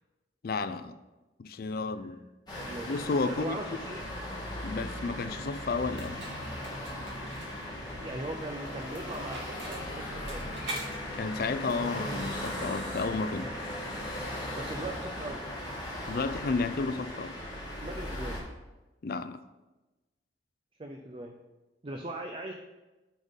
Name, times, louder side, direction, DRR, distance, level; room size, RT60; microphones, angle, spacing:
voice 1, 0.4-1.0 1.4-2.2 2.9-3.6 4.6-6.2 11.2-13.5 16.1-17.4 19.0-19.4, left 4 dB, 55° left, 12 dB, 0.4 m, -32 dB
sound 1, 2.5-18.4, left 1 dB, 25° left, 1.7 m, -38 dB
voice 2, 2.5-3.0 3.3-4.1 8.0-10.4 14.5-15.5 17.8-18.4 20.8-21.4 21.8-22.5, right 2 dB, 30° right, 2 dB, 0.5 m, -39 dB
sound 2, 3.0-15.8, right 1 dB, 85° right, 2.2 m, -47 dB
sound 3, 7.1-16.4, left 1 dB, 75° left, 2.1 m, -45 dB
10.0 x 3.7 x 4.0 m, 1.1 s
head